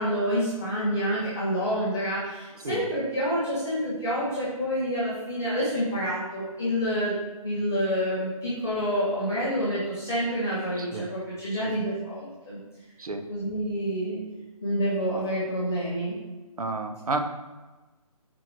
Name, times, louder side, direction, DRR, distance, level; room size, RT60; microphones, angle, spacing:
voice 1, 0.0-12.6 13.3-14.2 14.6-16.1, equal, 5° left, -13 dB, 0.5 m, -28 dB
voice 2, 16.6-17.2, right 3 dB, 75° right, 7 dB, 1.1 m, -31 dB
8.7 x 4.8 x 4.6 m, 1.2 s
hypercardioid pair, 180°, 19 cm